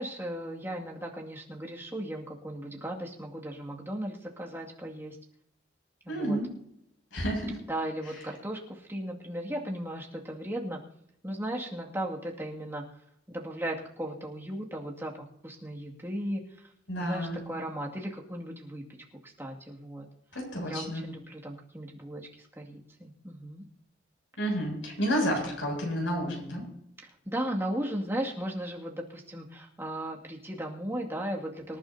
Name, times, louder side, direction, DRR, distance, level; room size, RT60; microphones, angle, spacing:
voice 1, 0.0-5.2 6.0-6.4 7.7-10.8 11.2-12.8 13.3-15.1 15.4-16.7 17.0-18.8 19.2-20.1 20.6-23.6 27.2-31.8, right 1 dB, 10° right, -2 dB, 2.2 m, -36 dB
voice 2, 6.1-6.5 7.1-7.5 16.9-17.4 20.3-21.0 24.4-26.6, equal, 85° left, 0 dB, 7.1 m, -30 dB
25.5 x 11.0 x 2.8 m, 0.74 s
head